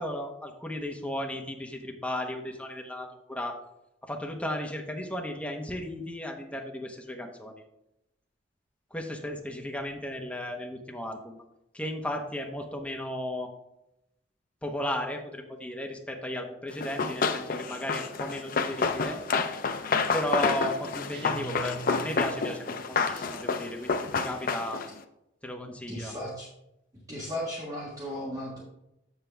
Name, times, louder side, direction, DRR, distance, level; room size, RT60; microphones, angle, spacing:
voice 1, 0.0-3.6 4.0-7.5 8.9-11.4 11.7-13.5 14.6-19.2 20.1-24.8 25.4-26.1, left 1 dB, 5° left, 2 dB, 0.9 m, -35 dB
Run, 16.8-25.0, left 4 dB, 45° left, 0.5 m, -29 dB
sound 1, 21.1-22.8, right 5 dB, 60° right, 0.4 m, -42 dB
voice 2, 25.9-26.5 27.1-28.6, equal, 20° right, -6 dB, 1.4 m, -36 dB
7.4 x 7.1 x 3.4 m, 0.85 s
head